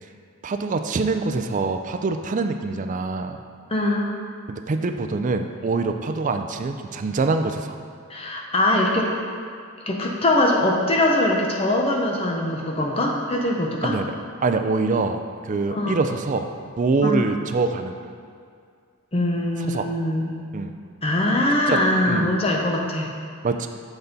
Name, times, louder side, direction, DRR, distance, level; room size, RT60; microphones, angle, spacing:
voice 1, 0.4-3.4 4.5-7.8 13.8-14.1 14.4-16.5 16.8-18.0 19.7-19.9 20.5-20.7 21.7-21.8 22.1-22.3 23.4-23.7, right 3 dB, 35° right, 7 dB, 0.4 m, -24 dB
voice 2, 3.7-4.1 8.1-9.1 9.9-14.0 15.7-16.0 17.0-17.2 19.1-20.4 21.0-23.1, left 1 dB, 25° left, -1 dB, 0.7 m, -22 dB
8.0 x 4.0 x 5.2 m, 2.2 s
head